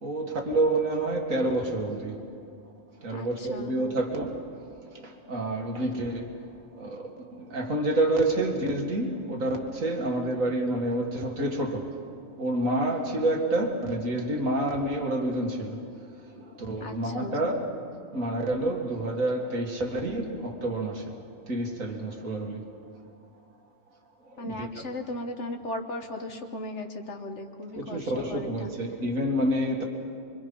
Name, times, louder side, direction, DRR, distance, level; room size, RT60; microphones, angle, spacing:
voice 1, 0.0-2.2 3.0-4.4 5.0-6.4 6.8-11.9 12.4-15.8 16.3-17.7 18.1-21.2 21.5-22.7 24.2-24.8 27.7-29.8, right 1 dB, 80° right, 2 dB, 2.4 m, -28 dB
voice 2, 3.1-3.7 16.8-17.4 24.4-28.7, left 1 dB, 60° left, 5 dB, 1.6 m, -37 dB
25.5 x 24.0 x 5.5 m, 2.4 s
omnidirectional pair, 1.4 m